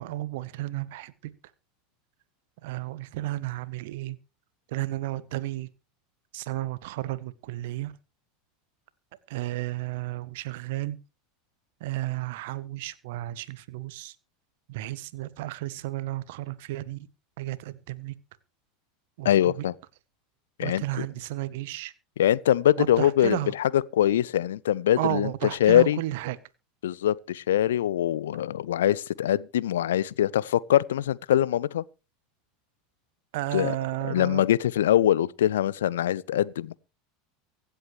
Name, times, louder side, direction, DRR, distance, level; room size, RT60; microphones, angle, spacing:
voice 1, 0.0-1.3 2.6-4.2 4.7-5.7 6.3-7.9 9.3-11.0 11.8-14.1 14.7-17.1 17.4-18.1 19.2-19.6 20.6-21.9 22.8-23.5 25.0-26.4 33.3-34.4, right 16 dB, 55° right, 1.1 m, -33 dB
voice 2, 19.2-19.7 20.6-20.8 22.2-25.3 25.6-26.0 26.8-31.8 33.5-33.7 34.1-36.8, left 11 dB, 65° left, 0.5 m, -23 dB
24.0 x 8.1 x 3.2 m
figure-of-eight pair, 75°, 0 cm